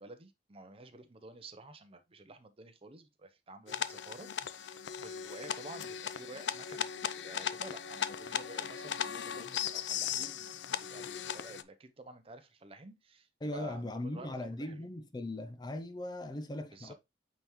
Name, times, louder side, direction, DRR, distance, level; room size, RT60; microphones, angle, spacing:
voice 1, 0.0-14.8 16.7-16.9, right 2 dB, 30° right, 0.7 m, -51 dB
sound 1, 3.7-11.6, left 8 dB, 90° left, 0.5 m, -37 dB
voice 2, 13.4-16.9, left 1 dB, 25° left, 0.5 m, -39 dB
8.6 x 3.6 x 3.0 m
head